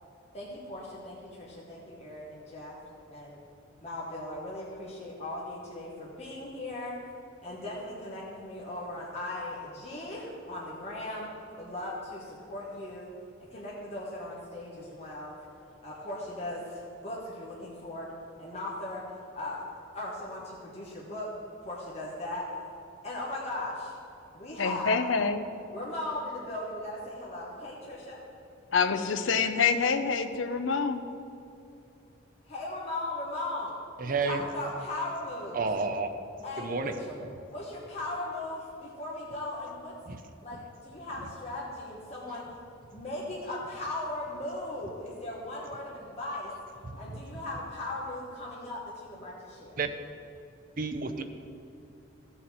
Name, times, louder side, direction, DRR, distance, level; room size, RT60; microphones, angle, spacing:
voice 1, 0.3-2.8 3.1-3.4 3.8-6.9 7.4-11.3 11.6-13.1 13.5-15.3 15.8-18.1 18.4-19.0 19.3-19.6 19.9-21.3 21.6-22.4 23.0-23.9 24.3-25.1 25.7-28.2 32.5-33.7 34.0-35.6 36.4-37.1 37.5-39.9 40.4-42.4 42.9-46.5 46.9-49.8, left 2 dB, 35° left, -6 dB, 1.5 m, -38 dB
voice 2, 24.6-25.4 28.7-31.0, left 5 dB, 75° left, 9 dB, 0.7 m, -26 dB
voice 3, 34.0-34.4 35.5-36.1 36.6-37.0 40.1-40.2 46.8-47.2 49.8-49.9 50.8-51.2, right 4 dB, 45° right, 7 dB, 0.6 m, -31 dB
15.0 x 7.0 x 4.3 m, 2.7 s
head